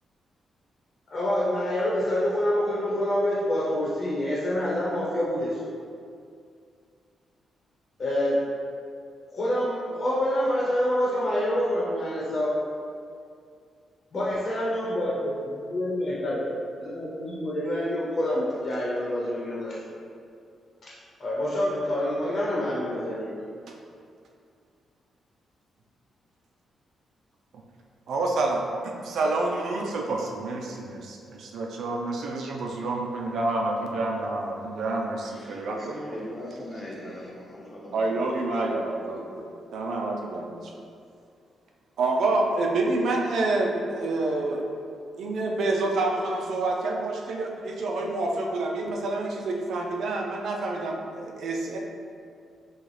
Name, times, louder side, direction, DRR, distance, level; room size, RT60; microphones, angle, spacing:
voice 1, 1.1-5.6 8.0-8.4 9.3-12.5 14.1-15.3 15.7-16.5 16.8-19.7 21.2-23.4, left 1 dB, 45° left, -6 dB, 1.0 m, -27 dB
voice 2, 28.1-36.2 37.9-40.7 42.0-44.6 45.2-51.8, right 2 dB, 75° right, 1 dB, 0.6 m, -28 dB
voice 3, 35.2-38.1, left 1 dB, 20° left, -4 dB, 1.0 m, -40 dB
6.1 x 2.4 x 3.3 m, 2.3 s
cardioid pair, 95°, 0 cm